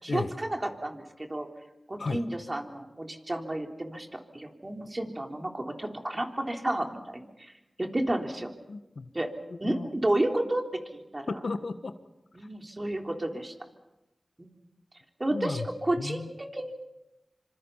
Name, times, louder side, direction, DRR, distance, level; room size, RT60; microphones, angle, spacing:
voice 1, 0.0-1.0 1.3-1.5 1.9-7.5 7.8-8.5 9.1-9.3 9.6-10.6 10.9-11.3 12.3-13.5 14.4-14.5 15.2-16.7, right 1 dB, 35° right, 3 dB, 3.7 m, -31 dB
voice 2, 8.7-9.1 9.6-9.9 11.3-11.9 15.3-15.7 16.0-16.3, left 3 dB, 75° left, 9 dB, 1.4 m, -33 dB
26.5 x 26.0 x 5.7 m, 0.97 s
cardioid pair, 45°, 0 cm